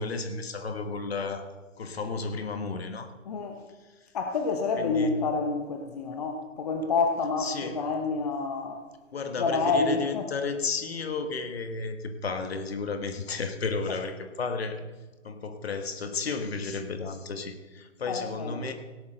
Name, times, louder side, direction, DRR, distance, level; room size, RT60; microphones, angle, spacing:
voice 1, 0.0-1.4 1.8-3.1 4.8-5.2 7.4-7.8 9.1-14.9 15.2-18.7, left 4 dB, 50° left, 7 dB, 1.6 m, -33 dB
voice 2, 3.3-3.6 4.1-8.8 9.4-10.2 18.1-18.6, left 4 dB, 30° left, 3 dB, 1.0 m, -28 dB
17.5 x 11.0 x 3.9 m, 1.2 s
figure-of-eight pair, 140°, 39 cm